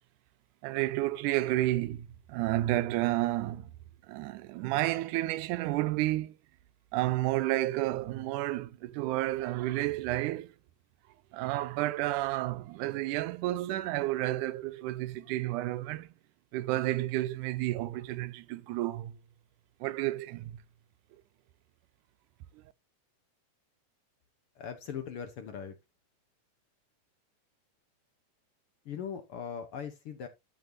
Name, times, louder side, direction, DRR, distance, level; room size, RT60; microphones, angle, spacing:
voice 1, 0.6-3.7 4.1-6.4 6.9-10.5 11.3-16.1 16.5-19.2 19.8-20.6, right 16 dB, 90° right, 2.1 m, -31 dB
voice 2, 24.5-25.7 28.8-30.3, left 7 dB, 65° left, 1.5 m, -40 dB
13.0 x 5.9 x 2.7 m
omnidirectional pair, 3.5 m